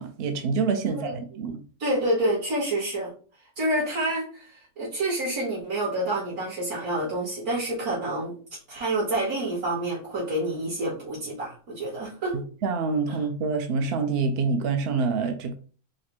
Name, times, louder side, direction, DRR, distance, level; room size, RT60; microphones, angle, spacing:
voice 1, 0.0-1.6 12.6-15.5, right 4 dB, 60° right, 6 dB, 0.6 m, -26 dB
voice 2, 0.8-1.1 1.8-3.1 3.6-8.3 8.7-12.4 13.1-13.2, right 1 dB, 85° right, -8 dB, 2.7 m, -28 dB
4.9 x 2.1 x 4.3 m, 0.40 s
omnidirectional pair, 1.5 m